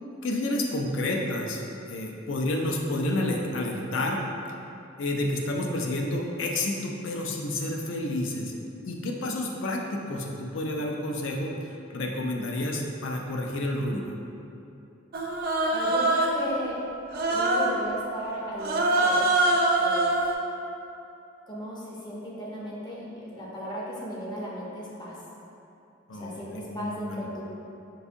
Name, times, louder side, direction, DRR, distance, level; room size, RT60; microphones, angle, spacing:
voice 1, 0.2-4.2 5.0-8.5 8.8-14.1 26.1-27.2, left 1 dB, 70° left, 0 dB, 0.4 m, -30 dB
Human voice, 15.1-16.5 17.1-17.8 18.6-20.3, right 2 dB, 50° right, 0.3 m, -24 dB
voice 2, 15.7-16.8 17.3-19.2 19.8-20.1 21.5-25.2 26.1-27.4, equal, 20° left, -5 dB, 0.6 m, -35 dB
4.7 x 2.6 x 2.5 m, 2.8 s
head